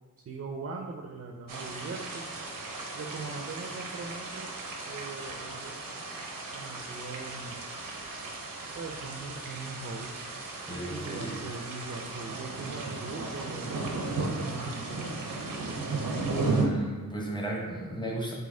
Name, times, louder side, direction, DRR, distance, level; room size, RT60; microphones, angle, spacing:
voice 1, 0.2-2.3 2.9-4.5 4.8-5.8 6.5-7.7 8.7-10.2 10.9-15.4, right 4 dB, 45° right, 2 dB, 0.4 m, -40 dB
sound 1, 1.5-16.7, right 3 dB, 85° right, 0.6 m, -36 dB
voice 2, 10.7-11.4 16.4-18.3, right 2 dB, 15° left, -2 dB, 0.8 m, -34 dB
4.0 x 2.7 x 3.7 m, 1.3 s
wide cardioid pair, 90°, 33 cm